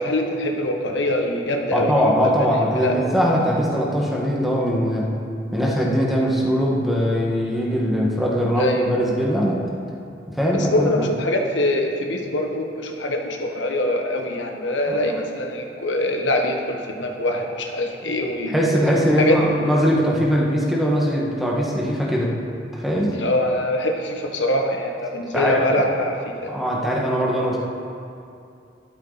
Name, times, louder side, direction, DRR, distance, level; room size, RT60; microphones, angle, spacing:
voice 1, 0.0-2.5 2.7-3.0 8.6-8.9 10.5-18.5 19.2-19.4 23.1-26.6, left 1 dB, 85° left, 2 dB, 1.3 m, -24 dB
voice 2, 1.7-5.1 5.5-9.6 10.4-10.9 14.9-15.0 18.5-22.3 22.7-23.2 25.3-25.6 26.5-27.6, equal, ahead, -4 dB, 1.7 m, -21 dB
13.0 x 12.5 x 4.2 m, 2.6 s
head